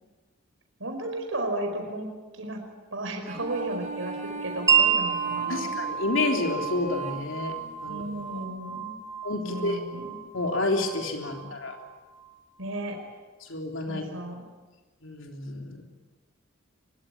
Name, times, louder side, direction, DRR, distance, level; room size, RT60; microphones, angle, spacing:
voice 1, 0.8-2.1 2.3-2.6 2.9-5.7 7.8-9.0 9.4-10.2 11.4-11.5 12.6-13.0 13.9-14.4, right 1 dB, 80° right, 4 dB, 4.9 m, -34 dB
sound 1, 3.3-8.5, right 4 dB, 40° right, 3.7 m, -40 dB
Wind chime, 4.7-12.3, right 7 dB, 15° right, 2.8 m, -30 dB
voice 2, 5.5-8.0 9.2-9.8 10.3-11.8 13.5-14.0 15.0-15.8, left 2 dB, 75° left, 2 dB, 3.8 m, -29 dB
24.0 x 22.0 x 9.7 m, 1.2 s
head